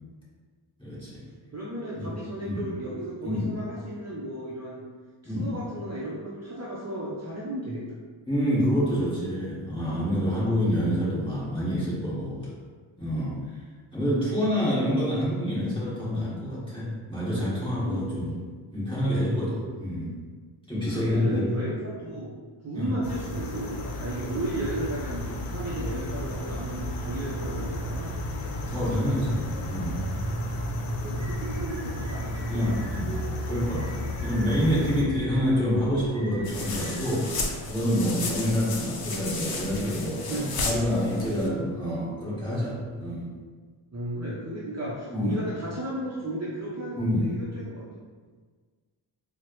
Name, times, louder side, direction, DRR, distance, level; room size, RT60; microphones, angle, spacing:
voice 1, 0.8-1.2 1.9-2.1 2.4-2.6 3.2-3.5 5.2-5.5 8.3-12.5 13.0-13.4 13.9-18.3 18.7-20.1 20.7-21.4 22.7-23.0 28.7-30.0 32.5-33.1 33.5-43.3 45.1-45.3 47.0-47.3, equal, 10° left, -9 dB, 1.4 m, -27 dB
voice 2, 1.5-4.8 5.2-7.8 17.8-18.4 20.9-22.3 22.6-28.3 30.5-32.8 38.4-38.6 40.3-41.0 43.9-47.9, right 1 dB, 35° right, -6 dB, 0.6 m, -34 dB
sound 1, 23.0-35.0, left 1 dB, 90° left, 0.6 m, -33 dB
sound 2, 31.2-37.1, right 2 dB, 30° left, 1.4 m, -40 dB
sound 3, 36.4-41.5, left 3 dB, 50° left, 0.6 m, -33 dB
4.5 x 2.1 x 3.0 m, 1.5 s
wide cardioid pair, 90°, 50 cm